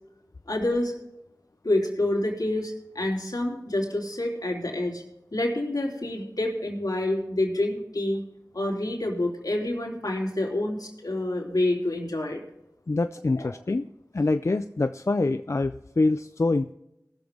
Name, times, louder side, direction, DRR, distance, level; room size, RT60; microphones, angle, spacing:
voice 1, 0.5-0.9 1.6-5.0 5.3-8.2 8.5-12.4 13.3-13.5, left 1 dB, 75° left, -1 dB, 3.1 m, -27 dB
voice 2, 12.9-13.9 14.1-16.7, left 2 dB, 50° left, 10 dB, 0.4 m, -25 dB
19.5 x 7.1 x 3.7 m, 0.87 s
wide cardioid pair, 40°, 7 cm